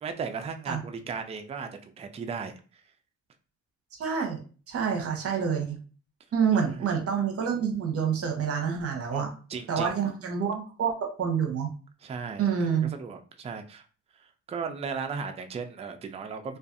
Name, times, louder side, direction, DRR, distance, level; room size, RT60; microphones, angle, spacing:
voice 1, 0.0-2.5 6.6-6.9 9.1-9.9 12.0-13.9 14.5-16.6, right 5 dB, 20° right, 7 dB, 0.3 m, -36 dB
voice 2, 4.0-4.4 4.7-5.8 6.3-9.3 9.7-11.7 12.4-12.9, right 7 dB, 50° right, 3 dB, 0.8 m, -27 dB
2.5 x 2.3 x 2.5 m, 0.38 s
cardioid pair, 90°, 30 cm